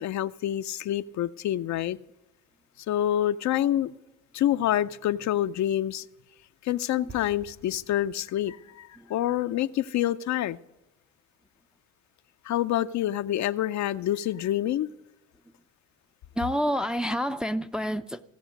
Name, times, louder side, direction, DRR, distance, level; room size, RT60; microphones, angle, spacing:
voice 1, 0.0-2.0 2.9-3.9 4.3-6.0 6.6-10.6 12.4-14.9, left 12 dB, 55° left, 0.5 m, -27 dB
sound 1, 7.1-8.7, right 4 dB, 55° right, 2.8 m, -50 dB
voice 2, 16.3-18.2, equal, ahead, 0.5 m, -29 dB
16.5 x 7.1 x 5.2 m
hypercardioid pair, 55°, 34 cm